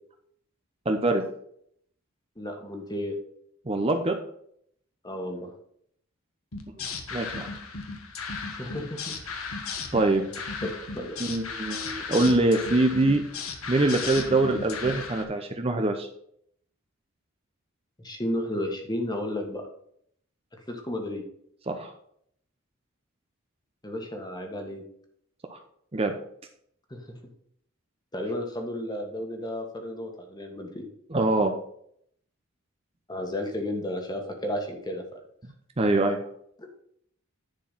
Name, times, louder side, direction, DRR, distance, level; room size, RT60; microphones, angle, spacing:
voice 1, 0.9-1.2 3.7-4.2 7.1-7.5 9.9-10.2 11.2-13.2 13.7-16.1 21.7-21.9 25.5-25.6 25.9-26.1 31.1-31.5 35.8-36.2, right 2 dB, 25° right, 5 dB, 0.7 m, -24 dB
voice 2, 2.4-3.2 5.0-5.5 8.5-9.1 10.6-11.3 18.0-19.6 20.7-21.2 23.8-24.8 26.9-27.2 28.1-30.9 33.1-35.0 36.6-36.7, left 1 dB, 20° left, 3 dB, 1.5 m, -33 dB
sound 1, 6.5-15.2, left 4 dB, 75° left, 1.5 m, -35 dB
10.5 x 4.6 x 5.7 m, 0.69 s
head